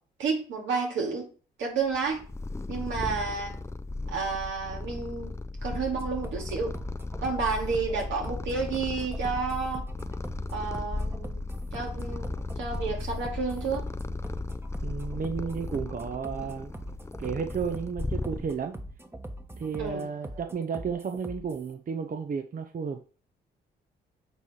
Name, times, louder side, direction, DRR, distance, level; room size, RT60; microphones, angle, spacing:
voice 1, 0.2-1.3 1.6-2.2 2.7-3.5 4.1-5.3 5.6-6.7 7.2-9.9 10.5-11.4 11.7-13.8 15.4-15.5 19.8-20.4, right 4 dB, 75° right, 1 dB, 2.4 m, -31 dB
Purr, 1.9-18.8, left 2 dB, 15° left, 0.5 m, -36 dB
sound 1, 5.7-21.7, right 1 dB, 10° right, 1.2 m, -42 dB
voice 2, 14.8-16.7 17.2-18.7 19.6-23.0, right 6 dB, 45° right, 6 dB, 0.8 m, -33 dB
8.2 x 3.2 x 5.6 m, 0.38 s
supercardioid pair, 60°, 19 cm